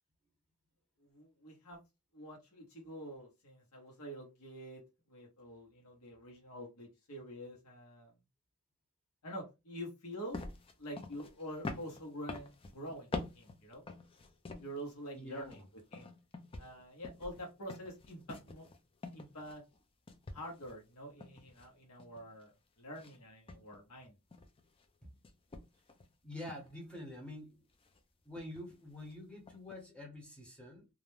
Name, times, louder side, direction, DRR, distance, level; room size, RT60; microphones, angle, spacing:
voice 1, 1.0-1.8 2.1-4.8 5.1-8.1 9.2-10.4 10.8-13.8 14.6-15.6 15.9-16.1 16.6-18.7 19.1-19.6 20.3-24.2, equal, 85° left, 0.9 m, -47 dB
sound 1, 10.3-14.9 15.3-19.8 20.1-22.4 22.9-23.2 23.5-24.9 25.2-26.1 26.5-26.7 27.7-28.0 28.3-28.8 29.0-29.1 29.5-29.8, left 3 dB, 25° left, 0.3 m, -46 dB
voice 2, 15.1-15.6 23.5-23.6 25.0-25.1 26.2-27.6 28.2-30.9, left 1 dB, 5° left, 0.7 m, -47 dB
2.4 x 2.1 x 3.1 m
head